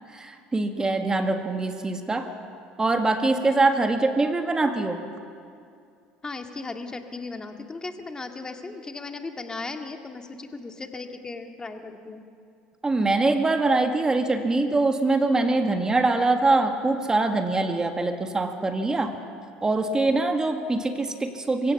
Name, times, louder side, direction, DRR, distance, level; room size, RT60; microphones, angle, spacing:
voice 1, 0.1-2.3 2.8-5.0 12.8-19.1 19.6-21.7, right 2 dB, 20° right, 7 dB, 1.8 m, -23 dB
voice 2, 6.2-12.2, left 3 dB, 20° left, 5 dB, 2.0 m, -36 dB
24.0 x 16.5 x 7.1 m, 2.4 s
supercardioid pair, 80°, 3 cm